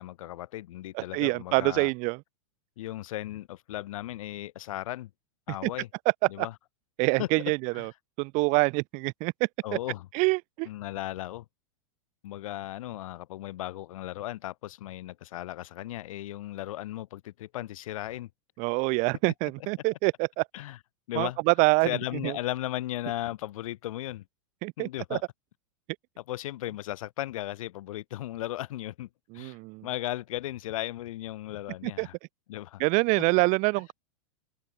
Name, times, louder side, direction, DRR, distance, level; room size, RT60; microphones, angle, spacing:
voice 1, 0.0-1.9 2.8-5.1 5.5-5.9 6.3-6.5 7.2-7.3 7.7-7.9 9.6-10.1 10.7-11.5 12.2-18.3 20.5-20.8 21.1-21.4 21.8-24.2 24.8-25.2 26.2-29.1 29.3-29.6 29.8-32.1 32.5-32.8, left 14 dB, 70° left, 5.7 m, -36 dB
voice 2, 0.9-2.2 6.4-6.5 7.0-7.9 8.2-9.3 10.1-10.7 18.6-20.4 21.2-21.9 22.2-22.3 24.6-25.2 29.3-29.9 31.8-32.1 32.8-33.9, right 28 dB, 45° right, 2.0 m, -26 dB
open air
supercardioid pair, 135°, 18 cm